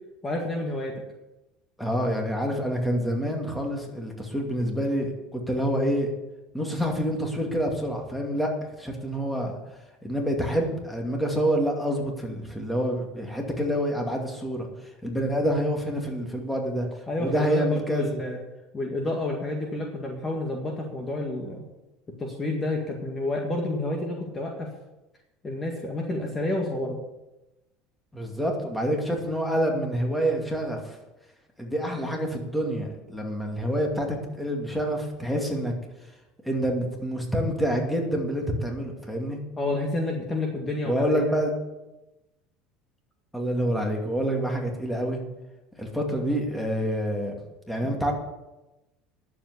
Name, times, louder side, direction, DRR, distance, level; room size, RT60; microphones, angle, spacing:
voice 1, 0.2-1.0 17.1-18.4 18.7-21.6 22.2-24.7 25.4-27.0 39.6-41.2, left 2 dB, 20° left, 1 dB, 1.9 m, -29 dB
voice 2, 1.8-6.1 6.5-8.5 8.8-9.5 10.0-14.7 15.0-16.9 17.2-18.0 28.1-31.0 31.6-35.7 36.4-39.4 40.9-41.5 43.3-45.2 45.8-47.4 47.7-48.1, equal, 5° left, 1 dB, 2.5 m, -27 dB
11.0 x 7.7 x 8.2 m, 1.0 s
supercardioid pair, 125°, 0 cm